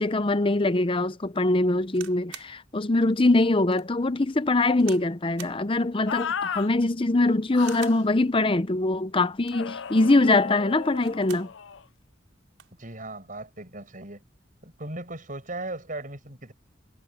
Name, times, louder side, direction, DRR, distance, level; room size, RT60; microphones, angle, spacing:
voice 1, 0.0-11.5, left 2 dB, 25° left, 0.7 m, -23 dB
sound 1, 1.9-2.6 3.1-3.2 3.7-3.9 4.8-5.1 5.4-5.6 6.6-7.0 7.6-8.1 9.3-9.7 10.8-11.5 11.9-12.0 12.3-12.8 13.6-13.9, right 10 dB, 85° right, 5.0 m, -45 dB
sound 2, 6.1-6.7 7.5-8.0 9.5-11.8, left 7 dB, 70° left, 0.6 m, -35 dB
voice 2, 12.8-14.2 14.6-16.5, right 2 dB, 45° right, 7.3 m, -37 dB
head